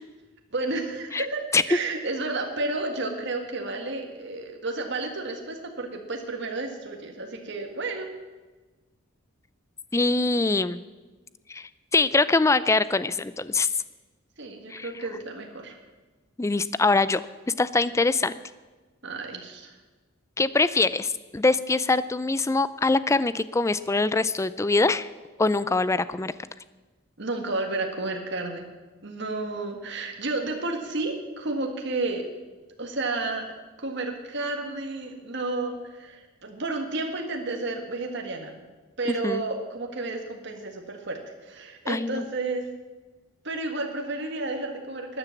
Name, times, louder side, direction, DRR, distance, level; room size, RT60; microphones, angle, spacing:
voice 1, 0.5-8.1 14.4-15.8 19.0-19.7 27.2-28.7 29.0-32.2 32.8-33.5 33.8-38.5 39.0-42.6 43.4-45.2, right 2 dB, 60° right, 3 dB, 1.8 m, -31 dB
voice 2, 9.9-10.8 11.5-13.7 14.7-14.9 16.4-17.2 17.6-18.3 20.4-25.1 25.4-26.3 39.2-39.4 41.9-42.2, left 3 dB, 15° left, 16 dB, 0.4 m, -23 dB
13.0 x 10.0 x 7.2 m, 1.2 s
head